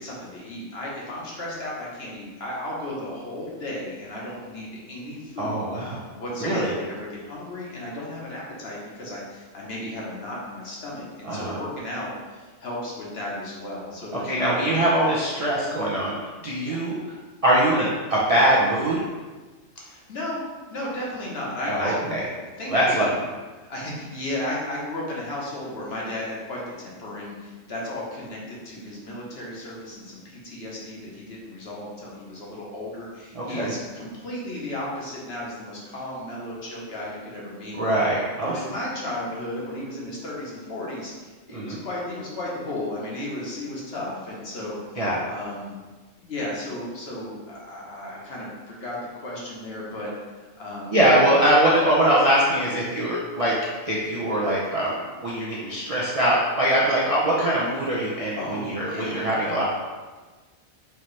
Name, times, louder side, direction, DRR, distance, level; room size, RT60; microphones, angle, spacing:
voice 1, 0.0-5.7 6.1-14.2 14.7-15.0 16.6-16.8 19.8-20.4 20.7-23.1 23.7-37.8 38.4-45.0 45.2-45.7 46.2-50.1 50.6-51.0 58.4-59.3, left 1 dB, 55° left, -4 dB, 1.1 m, -34 dB
voice 2, 5.4-6.0 6.4-6.7 11.2-11.6 14.1-16.2 16.4-17.0 17.4-19.0 21.6-22.2 22.7-23.1 33.3-33.7 37.7-38.5 41.5-41.8 45.0-45.2 50.9-53.5 53.8-59.6, right 1 dB, 45° right, -7 dB, 0.5 m, -22 dB
4.6 x 2.8 x 3.2 m, 1.3 s
omnidirectional pair, 1.3 m